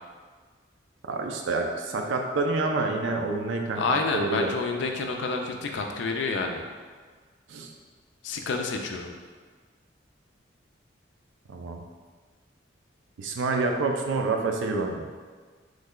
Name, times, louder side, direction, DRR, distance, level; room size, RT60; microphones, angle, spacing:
voice 1, 1.0-4.5 7.5-7.7 11.5-11.8 13.2-15.0, right 3 dB, 90° right, 3 dB, 0.4 m, -28 dB
voice 2, 3.8-6.6 8.2-9.1, left 3 dB, 75° left, 3 dB, 0.4 m, -28 dB
3.1 x 2.2 x 3.6 m, 1.5 s
head